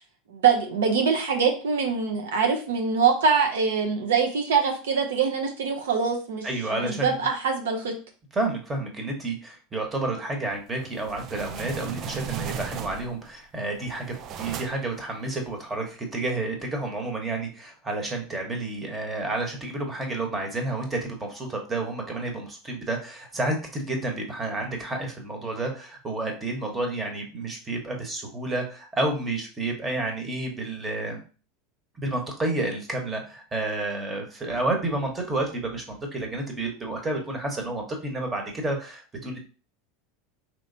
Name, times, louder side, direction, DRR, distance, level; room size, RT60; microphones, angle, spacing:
voice 1, 0.3-6.5 6.7-7.9, right 6 dB, 80° right, 3 dB, 0.7 m, -24 dB
voice 2, 6.4-7.1 8.3-14.1 14.4-31.2 32.0-39.4, right 2 dB, 20° right, 2 dB, 1.1 m, -30 dB
sound 1, 10.8-13.3 13.7-15.0, right 7 dB, 45° right, 0.3 m, -36 dB
3.1 x 3.1 x 2.7 m, 0.37 s
hypercardioid pair, 95°, 0 cm